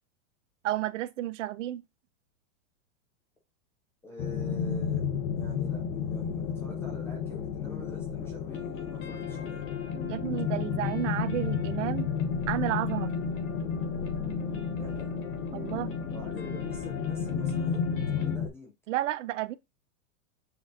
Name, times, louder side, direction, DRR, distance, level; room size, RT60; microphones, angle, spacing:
voice 1, 0.6-1.8 10.1-12.1 12.5-13.3 15.5-15.9 18.9-19.6, right 14 dB, 65° right, 0.5 m, -32 dB
voice 2, 4.0-5.0 5.3-9.6 14.8-15.1 16.1-17.8 18.1-18.7, left 2 dB, 5° left, 0.3 m, -47 dB
sound 1, 4.2-18.5, left 6 dB, 50° left, 0.8 m, -32 dB
sound 2, 8.5-18.4, left 4 dB, 30° left, 1.3 m, -46 dB
6.9 x 2.4 x 2.5 m
supercardioid pair, 145°, 41 cm